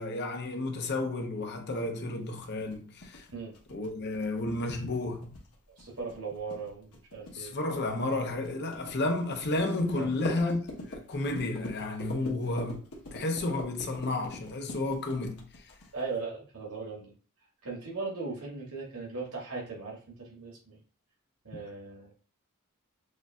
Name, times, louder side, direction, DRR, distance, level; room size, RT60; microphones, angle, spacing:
voice 1, 0.0-3.3 3.7-5.3 7.3-12.8 13.1-15.5, left 2 dB, 50° left, 0.8 m, -32 dB
sound 1, 2.4-16.2, left 1 dB, 75° left, 1.2 m, -43 dB
voice 2, 5.8-7.5 9.9-10.1 12.2-12.3 15.9-17.1 17.6-20.8 21.4-22.1, right 4 dB, 85° right, 1.8 m, -38 dB
6.4 x 2.6 x 2.4 m
head